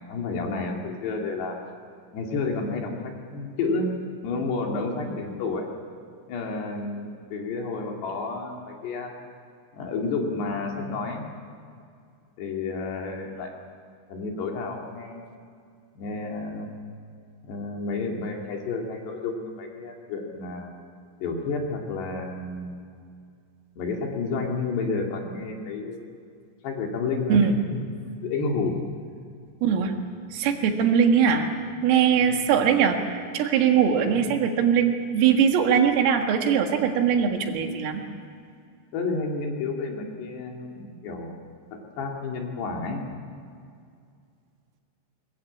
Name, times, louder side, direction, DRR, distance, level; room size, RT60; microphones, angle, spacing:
voice 1, 0.1-1.6 2.1-3.9 4.2-5.7 6.3-9.1 9.7-11.2 12.4-13.5 14.1-15.2 16.0-16.8 17.4-20.7 21.2-22.8 23.8-26.0 26.6-27.8 28.2-28.8 32.3-32.4 34.0-34.2 38.9-41.3 41.7-43.0, left 3 dB, 60° left, 1 dB, 4.1 m, -30 dB
voice 2, 29.6-29.9 30.3-31.5 31.8-38.0, right 7 dB, 80° right, 4 dB, 4.3 m, -21 dB
22.5 x 21.5 x 8.6 m, 2.3 s
omnidirectional pair, 5.8 m